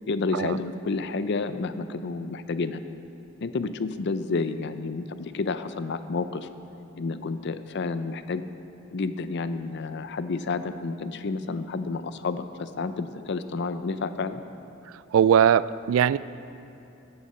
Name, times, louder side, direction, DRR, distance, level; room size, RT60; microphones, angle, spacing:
voice 1, 0.1-2.8 3.4-6.5 6.9-8.4 8.9-14.4, left 4 dB, 60° left, 11 dB, 0.5 m, -30 dB
voice 2, 15.1-16.2, right 8 dB, 75° right, 17 dB, 0.3 m, -20 dB
14.5 x 7.9 x 5.6 m, 2.8 s
head